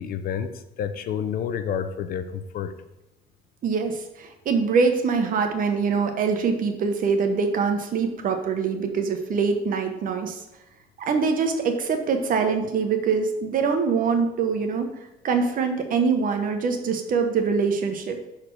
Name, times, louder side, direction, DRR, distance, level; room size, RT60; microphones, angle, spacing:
voice 1, 0.0-2.7, left 8 dB, 60° left, 11 dB, 0.6 m, -29 dB
voice 2, 3.6-10.4 11.0-14.9 15.2-18.2, right 5 dB, 55° right, 6 dB, 1.1 m, -24 dB
6.4 x 4.3 x 4.7 m, 0.93 s
cardioid pair, 110°, 17 cm